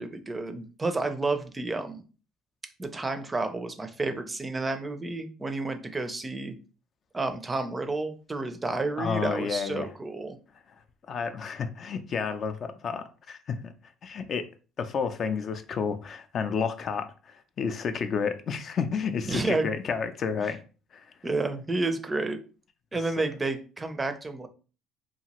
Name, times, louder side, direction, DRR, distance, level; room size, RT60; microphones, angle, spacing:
voice 1, 0.0-2.0 2.8-6.5 7.1-10.4 19.3-19.7 21.2-22.4 22.9-24.5, right 3 dB, 20° right, 0.4 m, -30 dB
voice 2, 9.0-9.9 11.1-13.7 14.0-14.5 14.8-20.6 20.9-21.1, left 6 dB, 45° left, 0.3 m, -31 dB
2.8 x 2.4 x 2.9 m
cardioid pair, 100°, 0 cm